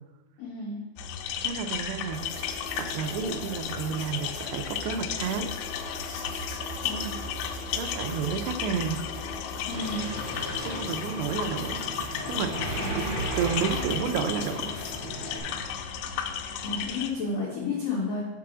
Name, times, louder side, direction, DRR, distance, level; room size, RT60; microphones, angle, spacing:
voice 1, 0.4-0.8 6.8-7.2 9.7-10.1 12.8-13.1 16.6-18.2, left 3 dB, 55° left, -9 dB, 1.9 m, -32 dB
sound 1, 1.0-17.1, left 7 dB, 85° left, 3.1 m, -34 dB
voice 2, 1.4-2.2 2.8-5.5 7.8-9.0 10.6-11.8 12.2-12.6 13.4-14.7, right 7 dB, 85° right, 6 dB, 2.4 m, -31 dB
sound 2, 2.1-15.4, left 3 dB, 70° left, 2.7 m, -42 dB
Mechanisms, 9.7-15.6, right 2 dB, 55° right, 2.0 m, -36 dB
6.8 x 4.6 x 6.1 m, 1.1 s
omnidirectional pair, 5.5 m